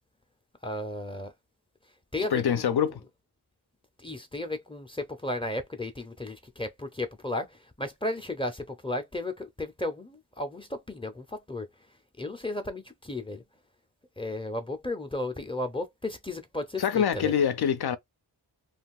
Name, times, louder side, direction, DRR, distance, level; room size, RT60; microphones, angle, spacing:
voice 1, 0.6-1.3 2.1-2.7 4.0-11.7 12.2-13.4 14.2-17.3, left 2 dB, 10° left, 0.6 m, -34 dB
voice 2, 2.3-3.0 16.8-18.0, left 8 dB, 65° left, 0.5 m, -25 dB
2.4 x 2.3 x 3.5 m
wide cardioid pair, 85°, 43 cm